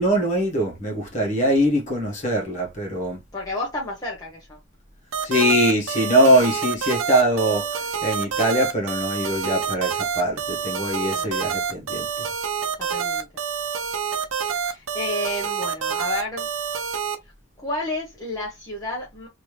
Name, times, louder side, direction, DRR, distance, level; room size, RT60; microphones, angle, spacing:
voice 1, 0.0-3.2 5.2-7.6 8.0-12.0, equal, 35° left, 1.3 m, -22 dB
voice 2, 3.3-4.6 6.3-6.4 11.1-11.4 12.9-13.3 14.6-16.5 17.6-19.3, left 1 dB, 15° left, 0.9 m, -31 dB
sound 1, 5.1-17.2, right 7 dB, 85° right, 0.7 m, -27 dB
3.4 x 2.7 x 3.1 m
head